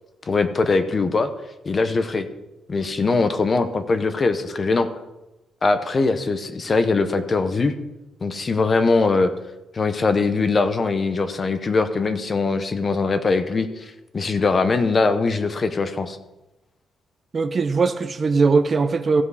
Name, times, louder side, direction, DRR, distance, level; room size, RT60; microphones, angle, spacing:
voice 1, 0.3-1.3 1.6-2.3 2.7-4.9 5.6-7.7 8.2-9.3 9.7-16.2, left 3 dB, 30° left, 10 dB, 0.8 m, -21 dB
voice 2, 17.3-19.2, right 4 dB, 30° right, 7 dB, 0.5 m, -20 dB
15.5 x 5.3 x 4.8 m, 0.97 s
cardioid pair, 145°, 0 cm